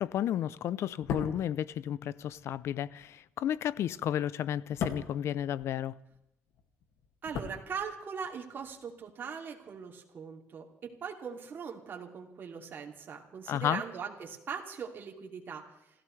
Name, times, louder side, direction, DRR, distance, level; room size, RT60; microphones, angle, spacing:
voice 1, 0.0-5.9 13.5-13.8, left 10 dB, 65° left, 0.6 m, -32 dB
sound 1, 0.9-6.2 6.5-8.3 8.6-8.7, left 7 dB, 80° left, 2.2 m, -40 dB
voice 2, 7.2-15.6, right 6 dB, 45° right, 2.8 m, -40 dB
29.0 x 15.0 x 3.3 m
cardioid pair, 130°, 5 cm